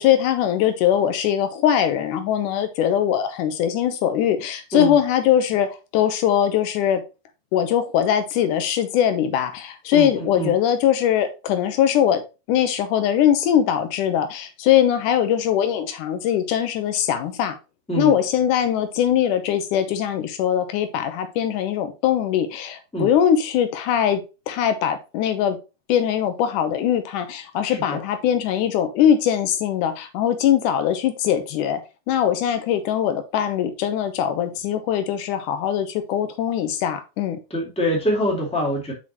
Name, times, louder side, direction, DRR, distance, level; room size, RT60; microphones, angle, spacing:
voice 1, 0.0-7.0 7.5-12.2 12.5-17.6 18.0-24.2 24.5-25.6 25.9-31.8 32.1-37.4, left 10 dB, 90° left, 9 dB, 2.4 m, -21 dB
voice 2, 9.9-10.5 17.9-18.1 22.9-23.1 27.6-28.0 37.5-38.9, equal, 5° left, -1 dB, 1.5 m, -24 dB
6.3 x 5.6 x 3.0 m, 0.28 s
omnidirectional pair, 3.6 m